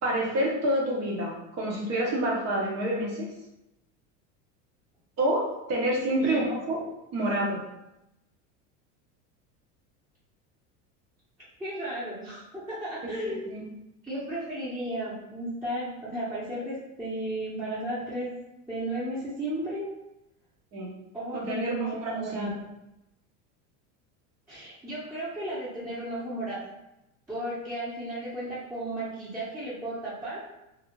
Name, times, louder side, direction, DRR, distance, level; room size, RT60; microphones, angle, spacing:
voice 1, 0.0-3.3 5.2-6.8 7.1-7.6 13.0-13.6 20.7-20.9 21.4-22.5, right 1 dB, 40° right, -2 dB, 0.7 m, -28 dB
voice 2, 6.2-6.5 11.6-13.4 14.0-18.3 18.7-19.9 21.1-22.5 24.5-26.6 27.3-30.4, right 1 dB, 10° right, -12 dB, 0.8 m, -34 dB
2.4 x 2.0 x 2.9 m, 0.90 s
supercardioid pair, 110°, 39 cm